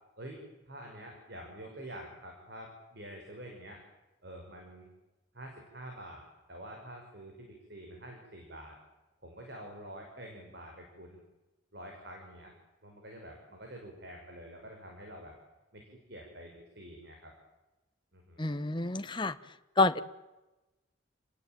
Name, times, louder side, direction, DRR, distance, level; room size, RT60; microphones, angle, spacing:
voice 1, 0.7-3.8 4.2-4.9 5.3-8.7 9.2-11.2 11.7-12.5 12.8-15.4 15.7-15.8 16.1-17.3 18.1-18.5, right 1 dB, 55° right, 1 dB, 5.8 m, -47 dB
voice 2, 18.4-19.4 19.8-20.0, left 3 dB, 25° left, 9 dB, 1.1 m, -28 dB
29.5 x 19.0 x 9.1 m, 1.1 s
head